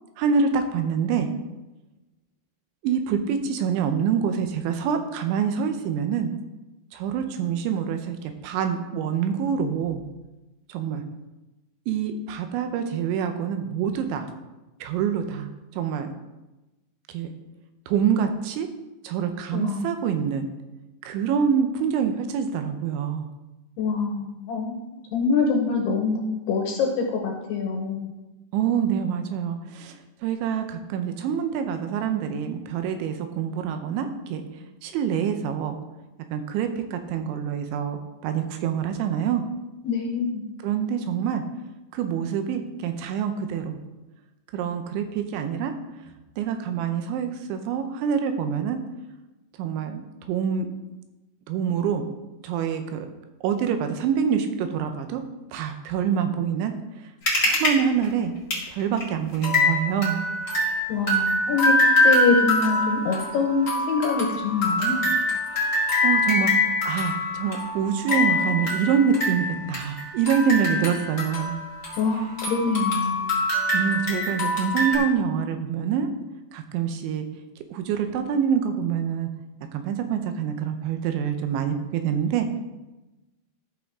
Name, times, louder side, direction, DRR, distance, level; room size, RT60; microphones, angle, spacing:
voice 1, 0.2-1.3 2.8-6.3 6.9-10.0 10.7-11.0 11.9-14.3 14.8-16.1 17.1-17.3 17.9-18.7 19.0-20.5 21.0-23.3 28.5-30.0 30.2-34.4 34.8-35.8 36.3-39.4 40.6-41.4 41.9-43.8 44.5-45.7 46.4-48.8 49.6-50.7 51.5-52.1 52.4-53.1 53.4-55.2 55.5-56.7 57.4-58.3 58.7-60.2 65.5-71.5 73.7-76.1 76.5-77.3 77.7-79.3 79.7-82.5, right 7 dB, 80° right, 7 dB, 3.0 m, -26 dB
voice 2, 19.5-20.1 23.8-28.1 39.8-40.5 60.9-61.8 62.0-65.1 72.0-73.4, left 4 dB, 75° left, 1 dB, 2.5 m, -25 dB
sound 1, 57.3-57.7 58.0-58.1 58.5-58.6 59.0-59.1 59.4-72.1 72.4-75.0, left 2 dB, 60° left, 0.8 m, -24 dB
13.5 x 6.3 x 3.6 m, 1.1 s
omnidirectional pair, 5.5 m